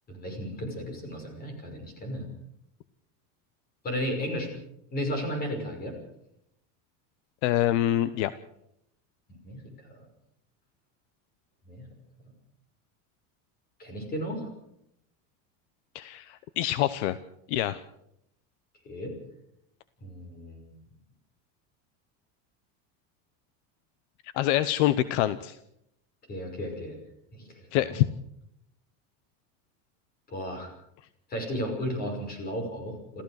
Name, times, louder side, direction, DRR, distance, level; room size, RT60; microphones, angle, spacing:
voice 1, 0.1-2.3 3.8-4.5 4.9-5.9 9.4-9.9 11.7-11.9 13.8-14.5 18.8-19.1 20.0-20.7 26.3-27.0 27.3-28.0 30.3-30.7 31.3-33.2, equal, 25° left, 4 dB, 5.8 m, -34 dB
voice 2, 7.4-8.3 15.9-17.2 17.5-17.8 24.3-25.6 27.7-28.1, left 13 dB, 65° left, 15 dB, 0.9 m, -25 dB
27.5 x 15.0 x 6.5 m, 0.77 s
cardioid pair, 175°, 38 cm